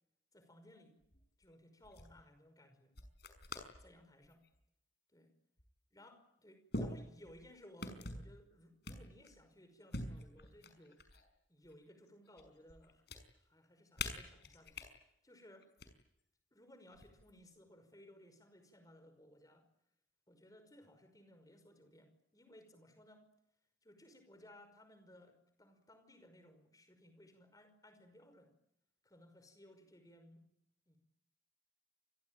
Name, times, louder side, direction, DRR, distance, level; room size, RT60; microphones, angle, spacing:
voice 1, 0.3-1.0 1.4-2.9 3.8-4.4 5.1-5.3 5.9-11.0 11.5-13.0 13.3-14.8 15.2-15.7 16.5-19.7 20.3-23.3 23.8-28.5 29.0-30.5 30.9-31.0, left 1 dB, 20° left, 8 dB, 5.5 m, -61 dB
sound 1, 1.0-1.5 1.8-2.1 3.0-3.8 4.2-4.6 5.6-5.7 6.7-7.5 7.8-8.3 8.8-9.4 9.9-11.3 11.6-12.4 12.7-13.2 14.0-14.9 15.6-15.9 16.9-17.4, left 2 dB, 55° left, 5.7 m, -45 dB
28.5 x 22.0 x 9.1 m, 0.80 s
head